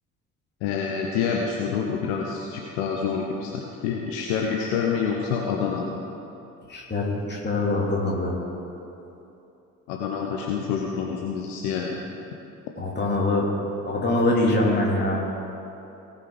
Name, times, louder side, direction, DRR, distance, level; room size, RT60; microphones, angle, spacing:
voice 1, 0.6-6.0 9.9-12.0, left 6 dB, 60° left, 0 dB, 1.1 m, -27 dB
voice 2, 6.7-8.4 12.8-13.5 13.8-15.2, left 2 dB, 25° left, -3 dB, 2.9 m, -23 dB
18.0 x 6.3 x 4.9 m, 2.9 s
figure-of-eight pair, 55°, 45 cm